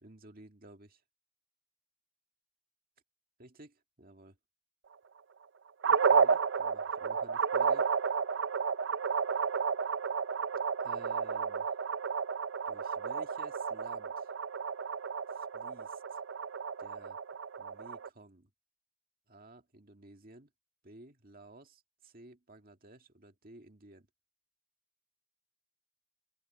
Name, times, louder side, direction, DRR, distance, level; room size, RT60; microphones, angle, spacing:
voice 1, 0.0-1.0 3.4-4.3 5.8-7.9 10.8-11.7 12.7-14.3 15.3-16.2 16.8-17.2 17.6-18.5 19.3-20.5 20.8-24.1, right 2 dB, 45° right, 2.1 m, -55 dB
sound 1, 5.8-18.1, right 6 dB, 60° right, 0.5 m, -32 dB
open air
head